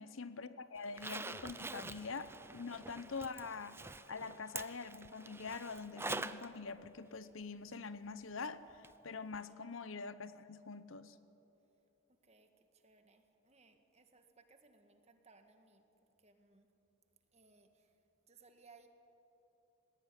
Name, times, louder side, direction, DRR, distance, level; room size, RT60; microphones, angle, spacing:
voice 1, 0.0-3.8 4.1-11.2, left 4 dB, 70° left, 13 dB, 0.9 m, -45 dB
Zipper (clothing), 0.8-6.5 6.8-6.9 8.8-8.9 9.3-9.4, right 3 dB, 10° right, 0.5 m, -46 dB
voice 2, 12.1-15.8 16.2-16.7 17.3-17.9 18.3-18.9, right 4 dB, 30° right, 6 dB, 1.7 m, -65 dB
19.0 x 18.0 x 10.0 m, 3.0 s
head